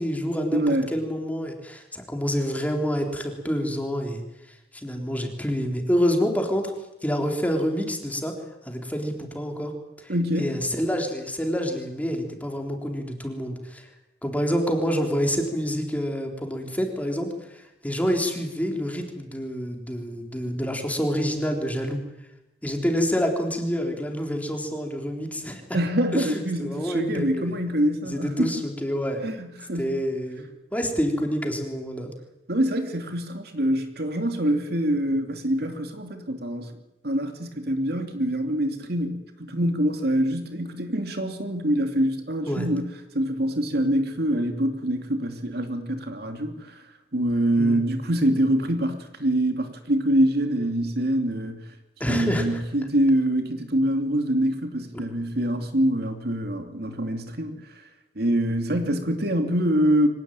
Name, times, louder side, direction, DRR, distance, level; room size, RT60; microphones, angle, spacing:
voice 1, 0.0-0.6 0.9-4.2 4.7-6.7 7.0-8.3 8.6-9.7 10.0-13.9 14.2-22.0 22.6-25.6 26.1-27.6 28.0-29.2 29.8-30.5 30.7-32.1 42.5-42.7 47.6-47.8 52.0-52.6 54.9-55.0, equal, 10° left, 3 dB, 3.9 m, -27 dB
voice 2, 0.5-0.9 10.1-10.6 25.7-28.6 29.2-29.9 32.5-36.7 37.0-42.8 43.1-46.8 47.1-51.6 52.1-57.6 58.2-60.1, right 1 dB, 60° right, 6 dB, 2.7 m, -25 dB
24.5 x 18.5 x 9.1 m, 0.91 s
head